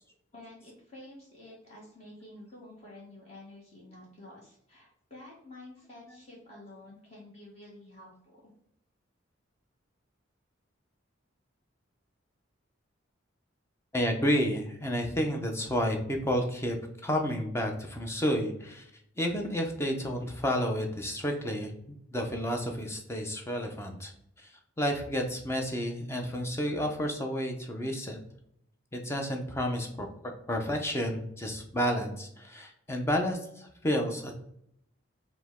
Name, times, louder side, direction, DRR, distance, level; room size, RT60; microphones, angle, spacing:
voice 1, 0.3-8.5, left 1 dB, 35° left, -5 dB, 1.1 m, -50 dB
voice 2, 13.9-16.8 17.0-18.9 19.2-24.1 24.4-24.5 24.8-28.2 28.9-34.3, equal, 15° left, 3 dB, 0.5 m, -31 dB
4.9 x 2.1 x 3.5 m, 0.73 s
head